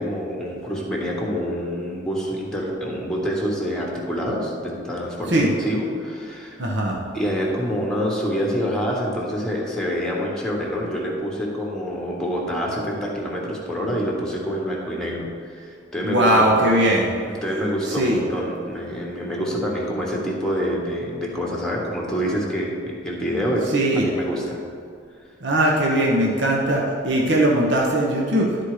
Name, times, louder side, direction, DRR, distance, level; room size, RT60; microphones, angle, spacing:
voice 1, 0.0-6.6 7.1-16.5 17.2-24.6, equal, 5° left, -3 dB, 1.3 m, -26 dB
voice 2, 6.6-7.0 16.0-17.1 17.9-18.2 23.7-24.0 25.4-28.6, right 1 dB, 60° right, -2 dB, 1.0 m, -20 dB
12.0 x 4.3 x 4.9 m, 2.3 s
head